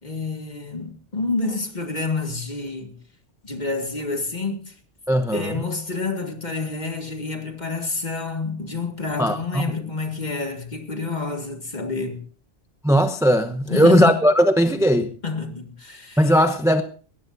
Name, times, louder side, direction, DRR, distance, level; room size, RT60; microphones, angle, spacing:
voice 1, 0.0-3.0 3.4-4.7 5.3-12.2 13.7-14.2 15.2-16.3, left 3 dB, 40° left, 2.1 m, -28 dB
voice 2, 5.1-5.5 9.2-9.7 12.8-15.1 16.2-16.8, equal, 5° right, 0.8 m, -18 dB
20.5 x 17.5 x 2.7 m
omnidirectional pair, 1.2 m